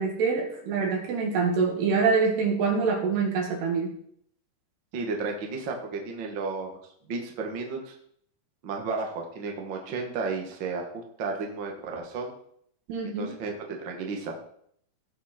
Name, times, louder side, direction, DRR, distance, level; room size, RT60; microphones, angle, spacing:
voice 1, 0.0-3.9 12.9-13.3, right 5 dB, 85° right, 1 dB, 4.2 m, -25 dB
voice 2, 4.9-6.7 7.1-7.9 8.6-12.3 13.0-14.3, right 4 dB, 45° right, 1 dB, 1.6 m, -33 dB
16.5 x 5.7 x 4.4 m, 0.67 s
omnidirectional pair, 4.6 m